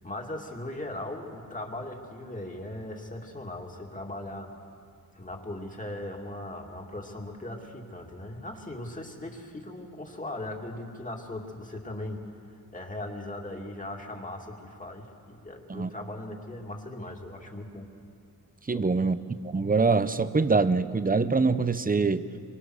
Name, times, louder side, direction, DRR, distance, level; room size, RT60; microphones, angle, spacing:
voice 1, 0.0-4.5 5.1-12.2 12.7-17.9 18.7-19.1, left 1 dB, 20° left, 1 dB, 2.6 m, -39 dB
voice 2, 18.7-19.2 19.4-22.2, right 4 dB, 25° right, 13 dB, 0.7 m, -24 dB
26.5 x 24.5 x 6.4 m, 2.3 s
wide cardioid pair, 120°, 37 cm